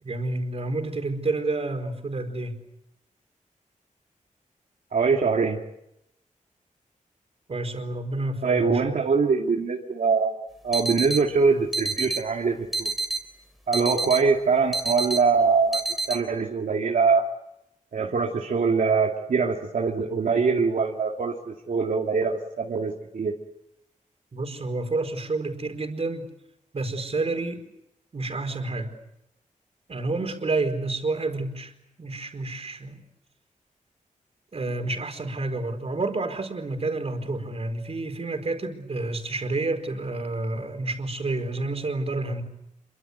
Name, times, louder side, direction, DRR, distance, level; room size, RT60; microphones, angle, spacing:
voice 1, 0.0-2.6 7.5-8.8 24.3-26.3 26.7-27.6 28.1-28.9 29.9-31.7 32.0-33.0 34.5-42.4, right 2 dB, 50° right, 6 dB, 4.6 m, -29 dB
voice 2, 4.9-5.6 8.4-10.4 10.6-12.9 13.7-17.3 17.9-23.3, right 5 dB, 75° right, 0 dB, 2.3 m, -23 dB
sound 1, 10.7-11.2 11.7-12.2 12.7-13.2 13.7-14.2 14.7-15.2 15.7-16.2, right 3 dB, ahead, 3.4 m, -28 dB
27.0 x 24.0 x 8.2 m, 0.82 s
wide cardioid pair, 120°, 14 cm